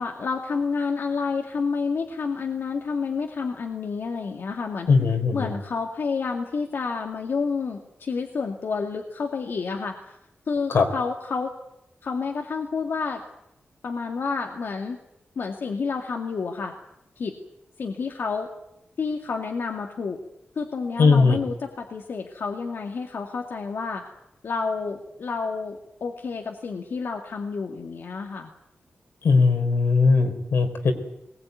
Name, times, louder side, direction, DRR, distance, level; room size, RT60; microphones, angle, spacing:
voice 1, 0.0-4.9 5.3-10.2 10.5-11.5 12.0-13.2 13.8-15.0 15.4-16.7 17.2-17.3 17.8-18.5 19.0-20.2 20.6-24.0 24.4-28.5, left 5 dB, 70° left, 2 dB, 2.2 m, -29 dB
voice 2, 4.9-5.5 10.7-10.9 21.0-21.4 29.2-30.9, left 4 dB, 85° left, 6 dB, 3.9 m, -19 dB
21.0 x 20.0 x 9.4 m, 0.83 s
wide cardioid pair, 120°, 4 cm